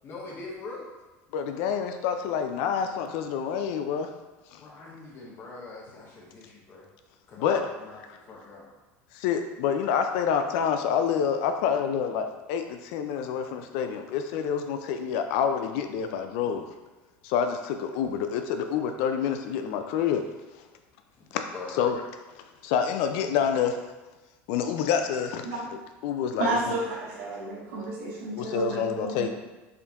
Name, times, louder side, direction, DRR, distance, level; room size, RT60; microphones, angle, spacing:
voice 1, 0.0-0.9 4.6-6.9 7.3-8.7 21.2-21.3 21.5-22.0, left 3 dB, 35° left, -4 dB, 0.9 m, -42 dB
voice 2, 1.3-4.1 7.4-7.6 9.2-12.6 12.9-16.6 17.3-17.6 17.8-20.2 21.8-22.0 22.7-23.7 24.5-25.4 26.0-26.8 28.5-29.3, left 7 dB, 70° left, 6 dB, 0.3 m, -27 dB
voice 3, 26.4-29.3, right 2 dB, 85° right, -4 dB, 0.9 m, -31 dB
3.7 x 2.6 x 3.4 m, 1.2 s
supercardioid pair, 125°, 7 cm